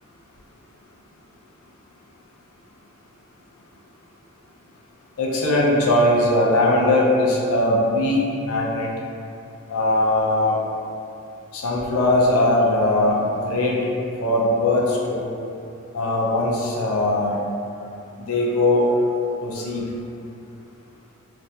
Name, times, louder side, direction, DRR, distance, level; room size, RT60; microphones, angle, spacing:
voice 1, 5.2-8.9 9.7-10.5 11.5-13.8 14.2-15.3 15.9-17.4 18.3-18.9 19.4-19.9, left 1 dB, 80° left, -3 dB, 0.5 m, -20 dB
2.7 x 2.4 x 3.3 m, 2.6 s
head